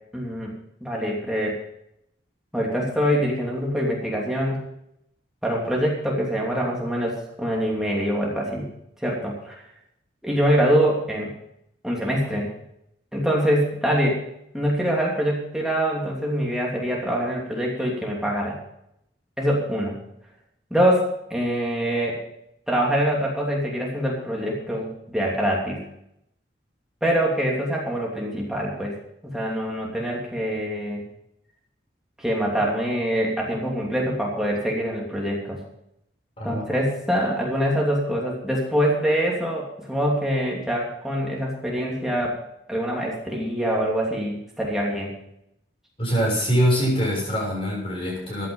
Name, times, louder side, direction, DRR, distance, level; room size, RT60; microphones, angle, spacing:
voice 1, 0.1-0.5 0.8-1.6 2.5-4.6 5.4-8.7 9.0-9.6 10.2-11.3 11.8-12.5 13.1-14.2 14.5-18.6 19.4-20.0 20.7-22.2 22.7-25.8 27.0-29.0 29.2-31.0 32.2-35.6 36.4-42.4 42.7-45.1, equal, 5° right, -3 dB, 2.9 m, -24 dB
voice 2, 46.0-48.5, equal, 30° left, -3 dB, 6.9 m, -23 dB
14.5 x 10.5 x 5.5 m, 0.78 s
head